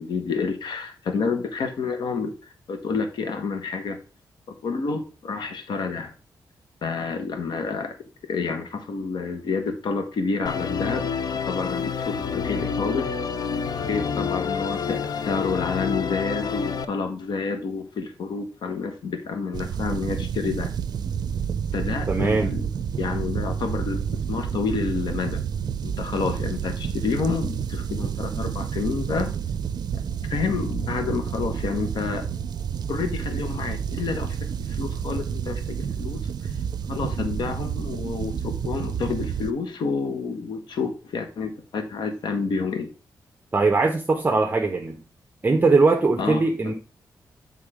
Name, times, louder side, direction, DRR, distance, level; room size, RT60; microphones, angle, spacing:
voice 1, 0.0-4.0 4.6-6.1 6.8-8.0 8.3-11.1 11.5-13.2 13.8-20.7 21.7-22.7 23.0-25.4 25.8-29.3 30.3-32.3 32.9-36.2 36.9-42.9 46.2-46.7, left 4 dB, 80° left, 1.2 m, -29 dB
Musical instrument, 10.5-16.9, left 6 dB, 60° left, 0.6 m, -28 dB
sound 1, 19.5-39.5, right 7 dB, 65° right, 0.5 m, -29 dB
voice 2, 22.1-22.6 43.5-45.0 45.4-46.7, right 3 dB, 25° right, 0.8 m, -20 dB
7.8 x 3.7 x 4.9 m
cardioid pair, 105°, 8 cm